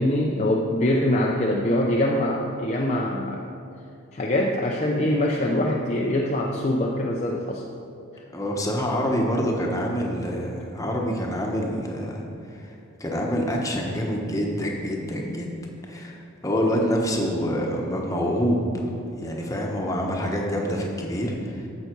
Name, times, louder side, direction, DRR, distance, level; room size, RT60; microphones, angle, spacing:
voice 1, 0.0-3.4 4.1-7.6, left 1 dB, 30° left, -1 dB, 0.6 m, -23 dB
voice 2, 8.3-12.7 13.0-15.5 15.8-16.2 16.4-18.7 19.2-21.7, equal, 15° left, -1 dB, 1.1 m, -26 dB
14.5 x 5.9 x 4.6 m, 2.6 s
head